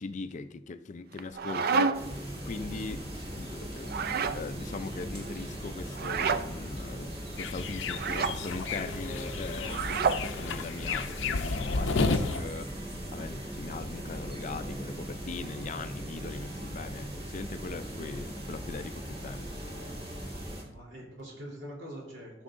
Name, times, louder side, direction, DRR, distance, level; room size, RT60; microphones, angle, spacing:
voice 1, 0.0-2.0 2.4-3.0 3.4-3.9 4.3-12.7 13.1-19.5, left 4 dB, 40° left, 0.4 m, -40 dB
sound 1, 1.1-2.2 3.8-4.4 6.0-6.5 7.9-8.4 9.6-10.3, right 5 dB, 55° right, 0.4 m, -29 dB
sound 2, 1.9-20.6, equal, 30° right, 1.9 m, -39 dB
sound 3, 7.4-12.4, left 3 dB, 85° left, 0.6 m, -32 dB
voice 2, 17.7-18.1 20.6-22.4, equal, 85° right, 3.2 m, -45 dB
13.5 x 6.3 x 2.6 m
head